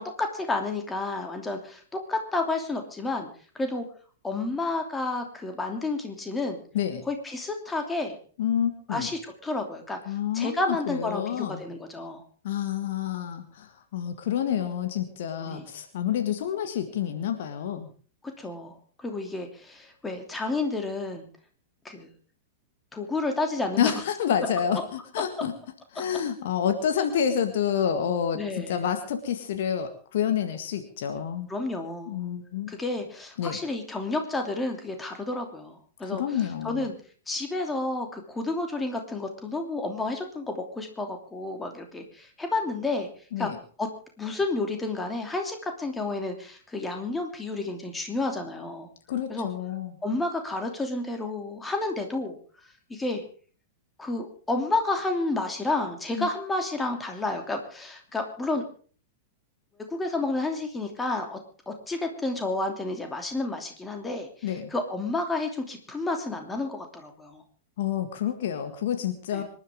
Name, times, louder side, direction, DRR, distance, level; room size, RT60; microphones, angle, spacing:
voice 1, 0.0-3.3 3.5-3.8 4.2-6.6 7.1-8.2 8.9-12.2 15.4-15.7 18.4-21.2 21.8-22.1 22.9-23.9 28.3-28.8 31.5-32.2 32.7-36.9 37.3-43.1 43.4-43.5 43.8-43.9 44.2-48.9 49.3-49.5 50.0-52.4 52.9-53.2 54.0-58.6 59.9-61.4 61.7-67.4 69.3-69.4, left 2 dB, 10° left, 4 dB, 2.9 m, -30 dB
voice 2, 8.4-9.1 10.1-11.6 12.4-17.9 23.8-25.5 25.9-31.5 32.1-32.7 33.4-33.6 36.0-36.9 43.3-43.6 49.1-49.9 56.2-56.3 64.4-64.7 67.8-69.4, left 9 dB, 55° left, 7 dB, 1.8 m, -28 dB
25.5 x 11.5 x 3.7 m, 0.41 s
figure-of-eight pair, 100°, 0 cm